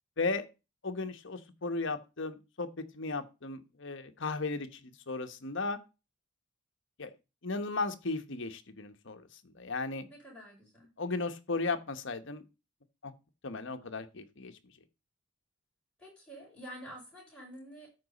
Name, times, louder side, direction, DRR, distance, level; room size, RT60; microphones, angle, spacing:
voice 1, 0.8-5.8 7.0-7.1 7.4-10.1 11.0-12.4 13.0-13.1 13.4-14.5, left 3 dB, 55° left, 9 dB, 1.0 m, -36 dB
voice 2, 10.1-10.9 16.0-17.9, equal, 5° left, -4 dB, 5.6 m, -48 dB
13.0 x 4.8 x 4.1 m, 0.29 s
head